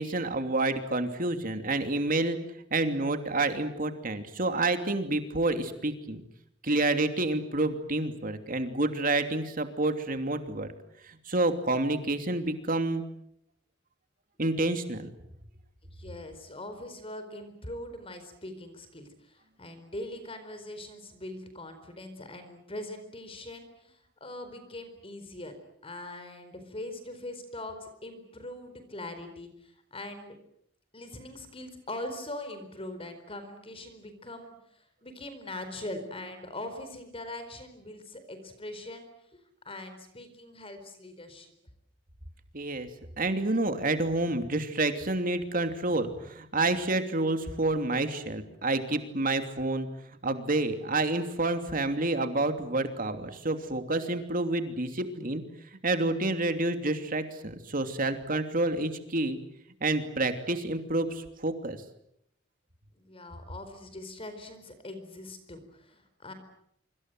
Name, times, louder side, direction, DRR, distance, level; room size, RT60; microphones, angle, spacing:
voice 1, 0.0-2.4 2.7-6.2 6.6-10.7 11.0-13.0 14.4-15.1 42.5-42.9 43.2-49.9 50.2-55.4 55.7-59.4 59.8-61.8, right 2 dB, 45° right, 7 dB, 2.9 m, -29 dB
voice 2, 15.9-25.5 25.8-30.3 30.9-39.1 39.6-41.5 62.9-66.3, left 1 dB, 30° left, 9 dB, 4.4 m, -42 dB
26.0 x 25.5 x 7.9 m, 0.74 s
head